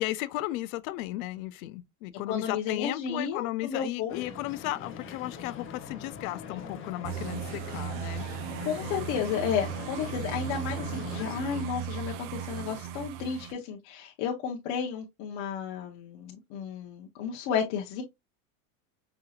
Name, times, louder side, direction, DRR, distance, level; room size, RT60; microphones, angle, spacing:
voice 1, 0.0-8.3 8.8-9.1, left 16 dB, 75° left, 0.6 m, -35 dB
voice 2, 2.3-4.2 8.6-18.0, left 7 dB, 60° left, 0.9 m, -32 dB
sound 1, 4.1-11.7, left 6 dB, 30° left, 0.9 m, -42 dB
sound 2, 7.0-13.5, right 10 dB, 55° right, 0.6 m, -37 dB
5.4 x 2.8 x 2.3 m
supercardioid pair, 135°, 42 cm